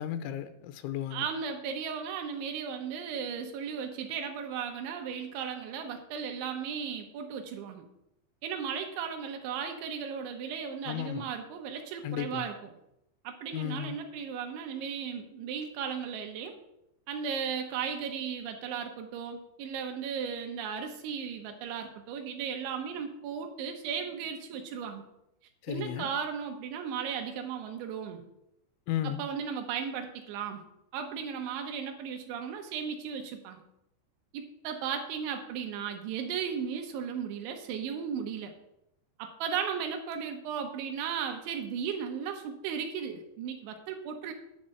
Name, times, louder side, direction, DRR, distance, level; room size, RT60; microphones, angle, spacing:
voice 1, 0.0-1.2 10.9-11.3 12.0-12.5 13.5-14.0 25.6-26.1 28.9-29.2, left 11 dB, 90° left, 10 dB, 3.2 m, -34 dB
voice 2, 1.1-7.9 8.4-12.6 13.2-16.5 17.1-25.1 25.7-28.2 29.0-30.6 30.9-33.6 34.3-38.5 39.2-44.3, right 7 dB, 85° right, 4 dB, 3.4 m, -36 dB
10.0 x 5.4 x 7.7 m, 0.81 s
omnidirectional pair, 5.3 m